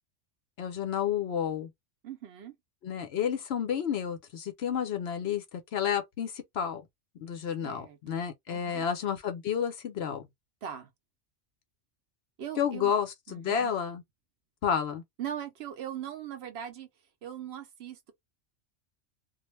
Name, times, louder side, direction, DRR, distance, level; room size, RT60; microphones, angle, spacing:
voice 1, 0.6-1.7 2.8-6.8 7.2-10.3 12.6-14.0 14.6-15.0, left 8 dB, 65° left, 0.8 m, -31 dB
voice 2, 2.0-2.6 7.6-8.2 8.5-8.9 10.6-10.9 12.4-12.9 13.3-13.7 15.2-16.9 17.2-18.1, right 9 dB, 65° right, 0.8 m, -40 dB
2.4 x 2.0 x 3.1 m
omnidirectional pair, 1.3 m